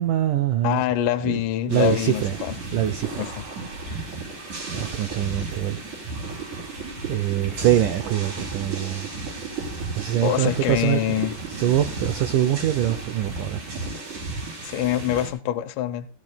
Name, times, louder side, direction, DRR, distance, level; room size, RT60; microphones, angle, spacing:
voice 1, 0.0-0.8 1.3-2.4 2.7-3.3 4.7-5.8 7.1-9.1 10.0-11.2 11.5-13.6, right 12 dB, 80° right, 1.8 m, -24 dB
voice 2, 0.6-2.6 3.2-3.4 10.2-11.3 14.6-16.1, left 12 dB, 75° left, 2.1 m, -25 dB
sound 1, 1.7-15.3, right 3 dB, 50° right, 4.5 m, -34 dB
15.5 x 13.5 x 2.3 m
omnidirectional pair, 4.6 m